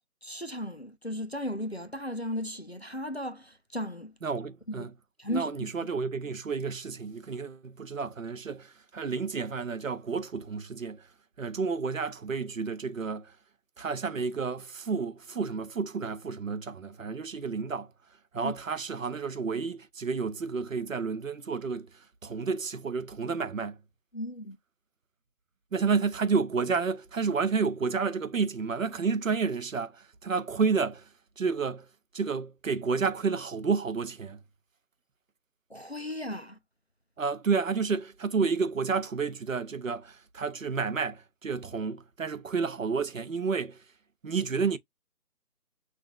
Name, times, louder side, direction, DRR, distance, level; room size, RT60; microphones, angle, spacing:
voice 1, 0.2-4.1 4.8-4.9 5.2-5.7 18.4-18.5 24.1-24.6 35.7-36.6, equal, 45° left, 0.4 m, -35 dB
voice 2, 4.2-4.9 5.3-11.1 11.4-13.4 13.8-17.9 18.3-23.8 25.7-31.1 31.4-31.9 32.1-34.4 37.2-43.8 44.2-44.8, right 5 dB, 60° right, 0.7 m, -30 dB
5.9 x 2.5 x 2.2 m
figure-of-eight pair, 180°, 45 cm